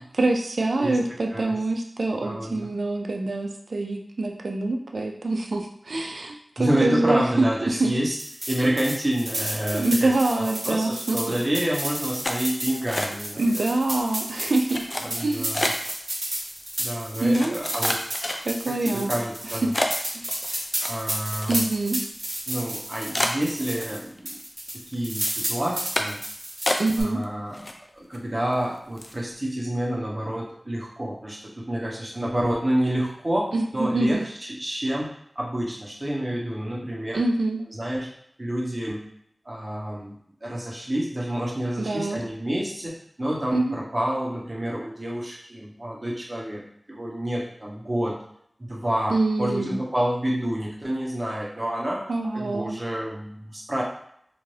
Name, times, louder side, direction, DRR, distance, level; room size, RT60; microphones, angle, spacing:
voice 1, 0.0-7.9 9.7-11.4 13.4-14.9 15.2-15.6 17.2-17.6 18.4-19.1 19.4-19.6 20.1-20.3 21.5-22.0 26.8-27.2 33.5-34.3 37.1-37.6 41.8-42.2 43.5-43.8 49.1-49.8 52.1-52.8, right 2 dB, 90° right, 2 dB, 0.4 m, -25 dB
voice 2, 2.2-2.7 6.6-8.2 8.5-13.7 15.0-15.7 16.8-18.0 18.7-19.7 20.9-21.6 22.5-24.4 24.9-26.2 27.0-27.6 27.9-37.2 37.7-38.1 38.4-39.0 39.4-46.6 46.9-48.2 48.6-52.0 52.3-53.8, right 1 dB, 35° right, -3 dB, 0.9 m, -28 dB
sound 1, 8.1-24.0 24.3-27.0, right 1 dB, 70° right, 1.1 m, -32 dB
sound 2, 12.2-13.5 13.8-14.2 14.7-16.0 16.6-16.7 17.3-18.7 19.2-19.4 19.7-21.9 22.2-22.3 22.7-22.8 23.1-24.2 24.5-24.9 25.2-25.4 25.9-26.3 26.7-27.2 27.5-28.2 28.5-28.6 29.0-29.2, left 1 dB, 35° left, 0.4 m, -29 dB
2.6 x 2.5 x 3.2 m, 0.70 s
wide cardioid pair, 50°, 0 cm